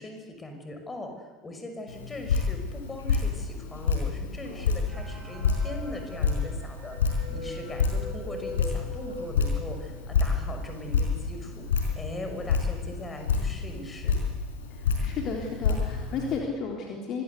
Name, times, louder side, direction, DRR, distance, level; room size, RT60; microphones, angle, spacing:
voice 1, 0.0-11.7 11.9-14.2, left 2 dB, 20° left, 5 dB, 6.1 m, -40 dB
Drip, 1.9-16.4, left 5 dB, 70° left, 4.8 m, -29 dB
sound 1, 4.9-10.3 10.7-10.8 11.0-11.2 11.9-12.0 12.4-12.7, left 1 dB, 35° right, 7.8 m, -42 dB
voice 2, 14.7-17.2, left 4 dB, 45° left, 1 dB, 3.6 m, -33 dB
25.0 x 20.0 x 8.3 m, 1.3 s
figure-of-eight pair, 65°, 0 cm